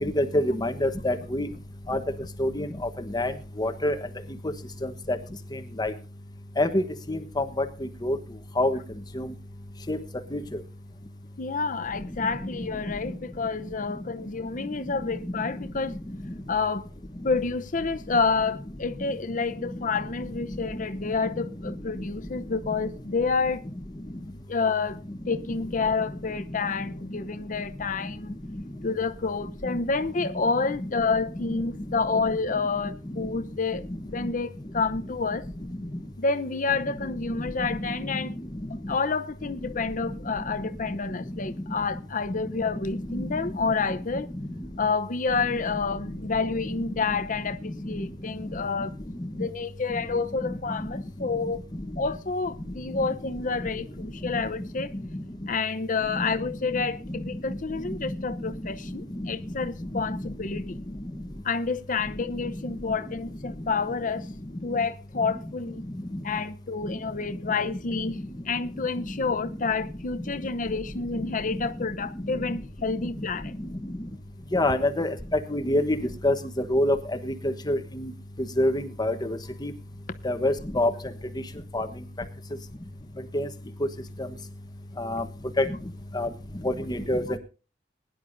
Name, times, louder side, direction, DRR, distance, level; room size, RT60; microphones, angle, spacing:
voice 1, 0.0-1.5 1.9-2.0 2.4-2.7 3.1-3.3 3.6-3.9 4.8-5.2 5.8-5.9 6.6-7.4 8.0-8.2 8.6-8.8 9.2-9.3 9.9-10.0 10.3-10.4 56.2-56.3 74.5-75.1 75.5-76.0 76.2-76.3 76.7-77.0 77.3-78.1 78.6-79.7 80.2-80.9 81.7-81.9 83.3-83.5 85.0-85.2 85.6-85.7 86.1-86.3 86.6-87.2, left 1 dB, 25° left, 1.2 m, -25 dB
voice 2, 11.4-16.0 16.5-16.9 17.2-23.6 24.5-28.4 28.8-35.5 36.2-38.3 38.9-44.3 44.8-48.9 49.3-51.6 52.0-54.9 55.5-60.8 61.4-64.3 64.6-65.8 66.2-73.5, left 4 dB, 45° left, 0.8 m, -29 dB
21.5 x 10.5 x 2.7 m
head